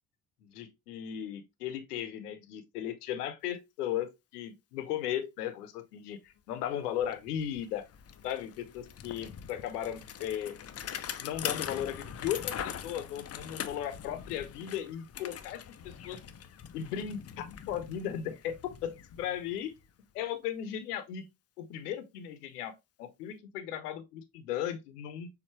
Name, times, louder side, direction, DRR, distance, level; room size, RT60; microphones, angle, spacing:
voice 1, 0.4-7.9 8.2-10.6 11.2-16.2 16.7-19.7 20.1-21.3 21.6-22.7 23.0-25.3, left 10 dB, 80° left, 0.9 m, -36 dB
Bicycle, 6.6-6.7 7.0-19.9, left 9 dB, 35° left, 0.7 m, -42 dB
6.6 x 2.6 x 3.1 m
figure-of-eight pair, 50°, 46 cm